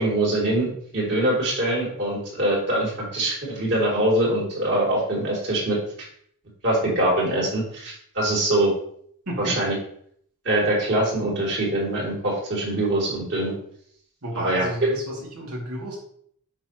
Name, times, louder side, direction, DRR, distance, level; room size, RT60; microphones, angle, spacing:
voice 1, 0.0-5.8 6.6-8.7 9.4-9.7 10.4-13.5 14.3-14.9, right 1 dB, 55° right, -4 dB, 3.3 m, -23 dB
voice 2, 14.2-16.0, right 1 dB, 85° right, -3 dB, 2.7 m, -32 dB
7.6 x 5.6 x 3.1 m, 0.64 s
head